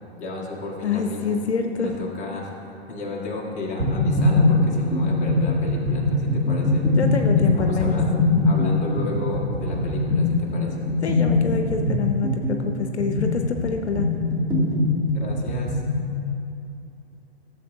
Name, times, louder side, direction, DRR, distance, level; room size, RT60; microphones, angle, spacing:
voice 1, 0.2-1.4 1.8-2.6 2.9-6.8 7.4-8.0 8.4-10.8 15.1-15.8, left 2 dB, 20° left, -2 dB, 1.4 m, -32 dB
voice 2, 0.8-1.9 6.9-8.0 11.0-14.1, left 5 dB, 80° left, 5 dB, 0.7 m, -26 dB
sound 1, 3.8-16.1, left 2 dB, 10° right, 2.2 m, -22 dB
14.0 x 7.3 x 2.6 m, 2.7 s
figure-of-eight pair, 115°, 33 cm